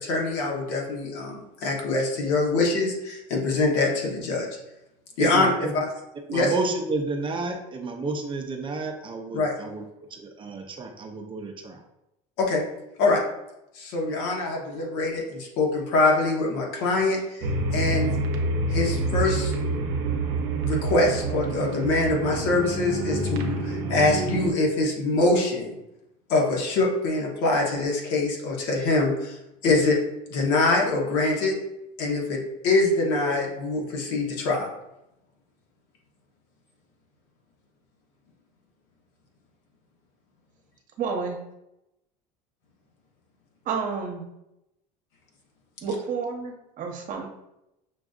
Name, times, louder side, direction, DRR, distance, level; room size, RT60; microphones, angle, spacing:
voice 1, 0.0-4.5 5.2-5.5 5.7-5.9 6.3-6.5 9.3-9.5 12.4-12.6 13.0-13.2 13.7-17.5 17.7-18.1 18.7-19.5 20.6-25.8 26.3-29.4 29.6-30.0 30.3-31.6 32.0-34.7, left 2 dB, 75° left, -1 dB, 1.2 m, -24 dB
voice 2, 5.2-5.7 6.3-9.8 10.1-11.8, right 3 dB, 30° right, 4 dB, 0.6 m, -31 dB
sound 1, 17.4-24.5, right 2 dB, 70° right, 0.7 m, -27 dB
voice 3, 41.0-41.4 43.7-44.2 45.8-47.3, right 5 dB, 45° right, 2 dB, 0.9 m, -30 dB
5.9 x 2.5 x 2.4 m, 0.88 s
supercardioid pair, 110°, 18 cm